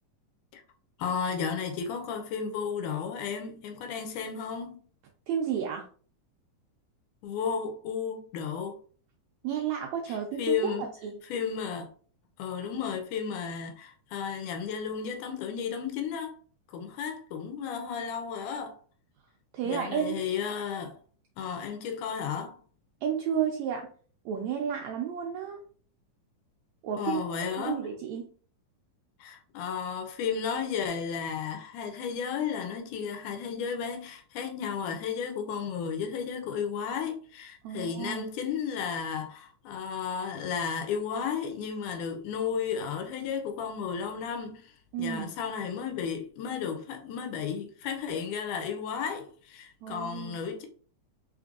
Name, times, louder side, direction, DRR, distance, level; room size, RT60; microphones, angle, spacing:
voice 1, 1.0-4.8 7.2-8.8 10.4-10.9 11.3-11.9 12.4-16.4 16.7-18.8 19.6-21.0 21.4-22.6 27.0-27.9 29.2-44.7 45.0-50.7, left 6 dB, 80° left, 2.0 m, -33 dB
voice 2, 5.3-5.9 9.4-11.1 19.5-20.2 23.0-23.9 24.2-25.6 26.8-28.3 37.6-38.2 44.9-45.3 49.8-50.4, right 8 dB, 85° right, 1.6 m, -32 dB
5.2 x 3.3 x 2.4 m
omnidirectional pair, 3.8 m